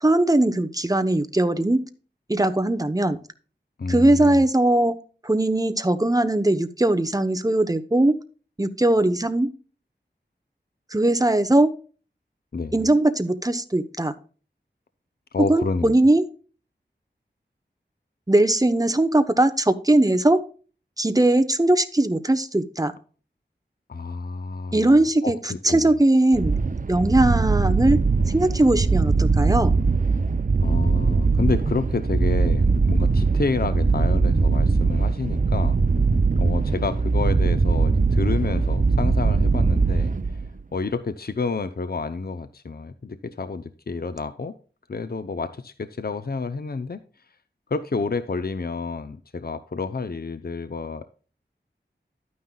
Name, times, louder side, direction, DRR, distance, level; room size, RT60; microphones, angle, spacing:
voice 1, 0.0-1.8 2.3-3.2 3.9-4.9 5.2-8.2 8.6-9.5 10.9-11.7 12.7-14.1 15.4-16.2 18.3-20.5 21.0-22.9 24.7-26.6 26.9-28.0 28.3-29.7, right 1 dB, 20° right, 1.0 m, -20 dB
voice 2, 3.8-4.5 12.5-12.7 15.3-16.0 23.9-24.9 25.2-25.9 30.6-35.8 36.4-40.4 40.7-44.5 44.9-47.0 47.7-51.1, left 4 dB, 55° left, 0.7 m, -29 dB
sound 1, 26.3-40.6, right 4 dB, 45° right, 0.6 m, -21 dB
12.0 x 9.5 x 2.4 m
wide cardioid pair, 60°, 19 cm